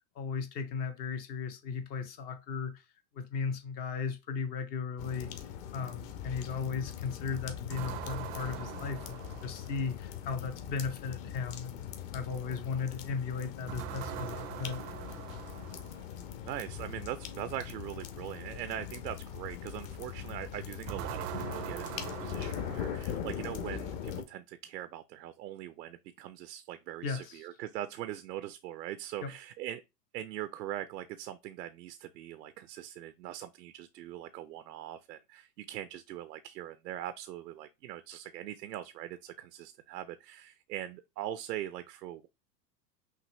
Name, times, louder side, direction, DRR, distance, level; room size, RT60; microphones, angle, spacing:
voice 1, 0.2-2.8 3.1-11.8 12.1-14.8 27.0-27.4 29.2-29.3, left 5 dB, 20° left, 0.3 m, -36 dB
sound 1, 5.0-24.2, left 9 dB, 55° left, 1.0 m, -41 dB
sound 2, 7.7-10.0 13.7-16.2 20.9-23.5, right 13 dB, 40° right, 0.4 m, -42 dB
voice 2, 16.4-29.8 30.1-42.3, right 12 dB, 85° right, 0.6 m, -41 dB
5.9 x 2.6 x 3.0 m
hypercardioid pair, 110°, 49 cm